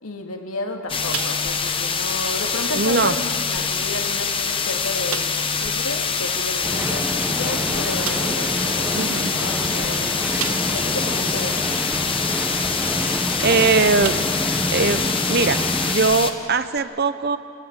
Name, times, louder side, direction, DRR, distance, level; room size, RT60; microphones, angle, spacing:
voice 1, 0.0-11.6, left 2 dB, 75° left, 3 dB, 2.6 m, -32 dB
sound 1, 0.9-16.3, left 5 dB, 25° left, 1.2 m, -25 dB
sound 2, 1.1-1.8 2.1-2.3 2.8-3.0 3.8-3.9 4.3-4.4 5.1-5.5 7.2-7.3 8.0-8.4 10.4-11.0 11.5-11.6 13.4-13.6 14.0-14.5 15.0-15.1 16.7-16.8, right 10 dB, 75° right, 0.9 m, -33 dB
voice 2, 2.8-3.1 8.9-9.3 13.4-14.2 14.7-17.4, right 4 dB, 45° right, 11 dB, 0.8 m, -20 dB
sound 3, 6.6-15.9, right 1 dB, 5° right, 1.3 m, -28 dB
25.5 x 18.0 x 9.0 m, 2.5 s
head